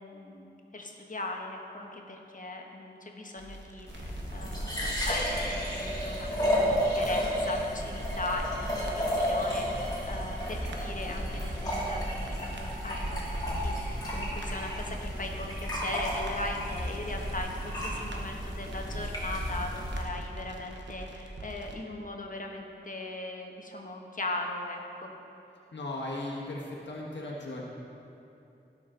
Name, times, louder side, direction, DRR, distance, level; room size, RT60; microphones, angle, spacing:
voice 1, 0.0-25.1, left 2 dB, 45° left, 1 dB, 1.2 m, -39 dB
sound 1, 3.4-21.8, right 2 dB, 90° right, 1.0 m, -45 dB
sound 2, 3.9-20.0, equal, 20° left, 2.7 m, -32 dB
voice 2, 25.7-27.6, left 2 dB, 80° left, -4 dB, 1.5 m, -37 dB
16.5 x 6.3 x 3.9 m, 2.8 s
wide cardioid pair, 80°, 18 cm